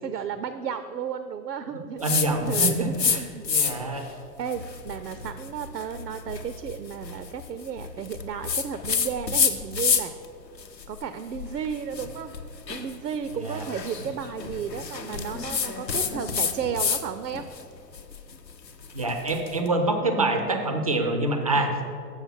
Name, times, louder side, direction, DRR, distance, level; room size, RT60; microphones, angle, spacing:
voice 1, 0.0-3.4 3.9-10.1 10.9-12.3 12.7-17.5 21.5-21.8, right 7 dB, 75° right, 11 dB, 0.5 m, -33 dB
sound 1, 2.0-3.2 3.4-4.0 4.5-10.3 10.6-17.0 17.3-19.5, left 6 dB, 85° left, 0.8 m, -28 dB
voice 2, 2.0-3.2 3.5-4.0 13.4-13.6 18.9-21.8, right 2 dB, 25° right, 5 dB, 0.3 m, -26 dB
7.3 x 6.3 x 6.0 m, 2.4 s
figure-of-eight pair, 110°, 49 cm